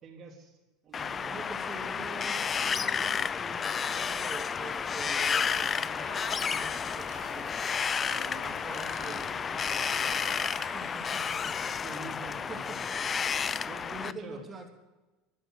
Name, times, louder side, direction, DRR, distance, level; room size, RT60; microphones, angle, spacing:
voice 1, 0.0-0.6 0.8-1.5 9.3-10.2 11.6-13.3 13.6-14.4, right 3 dB, 40° right, 1 dB, 3.5 m, -47 dB
Wind, 0.9-14.1, left 6 dB, 25° left, 0.5 m, -31 dB
voice 2, 1.2-7.5 8.1-9.6 10.6-11.6 12.3-13.0 13.9-14.7, right 3 dB, 20° right, 2 dB, 2.9 m, -45 dB
sound 1, 3.7-10.6, left 4 dB, 50° left, 3.6 m, -49 dB
sound 2, 4.5-11.9, right 7 dB, 75° right, 4.1 m, -51 dB
12.5 x 11.5 x 6.2 m, 1.1 s
supercardioid pair, 120°, 0 cm